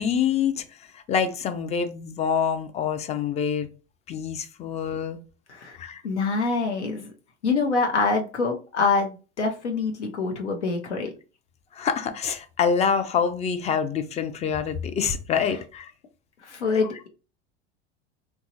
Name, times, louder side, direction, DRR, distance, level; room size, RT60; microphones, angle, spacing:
voice 1, 0.0-3.7 4.1-5.2 5.8-6.0 11.7-15.9, left 7 dB, 20° left, 0.3 m, -26 dB
voice 2, 6.0-7.1 7.4-11.1 16.4-17.1, left 4 dB, 85° left, 0.6 m, -25 dB
2.9 x 2.3 x 2.7 m
hypercardioid pair, 80°, 34 cm